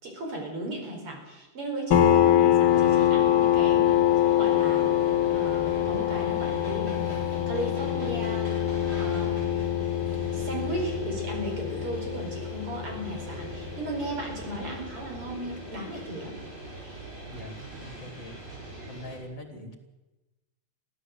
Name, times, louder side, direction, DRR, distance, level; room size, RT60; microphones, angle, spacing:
voice 1, 0.0-4.9 5.3-8.5 9.0-9.6 10.3-16.4, right 1 dB, 90° right, 2 dB, 5.9 m, -36 dB
sound 1, 1.9-15.2, left 11 dB, 70° left, 1.9 m, -25 dB
sound 2, 2.6-19.2, right 2 dB, 55° right, 8.2 m, -41 dB
voice 2, 17.3-18.4 18.8-19.8, left 1 dB, 35° left, 5 dB, 2.8 m, -43 dB
23.5 x 15.5 x 7.9 m, 1.1 s
omnidirectional pair, 2.4 m